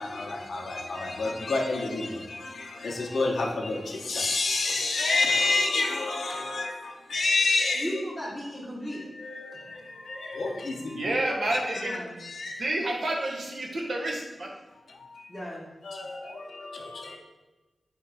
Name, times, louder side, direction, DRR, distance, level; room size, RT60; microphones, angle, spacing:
voice 1, 0.0-8.0 8.9-11.1 11.5-12.6 14.9-15.3 15.8-17.2, left 3 dB, 90° left, 0 dB, 0.6 m, -29 dB
voice 2, 7.7-9.0 11.7-12.2 15.3-15.7, equal, 5° right, -8 dB, 0.9 m, -35 dB
voice 3, 11.0-11.9 12.6-14.5, right 1 dB, 60° right, -1 dB, 0.8 m, -29 dB
3.4 x 2.9 x 4.7 m, 1.2 s
wide cardioid pair, 125°, 0 cm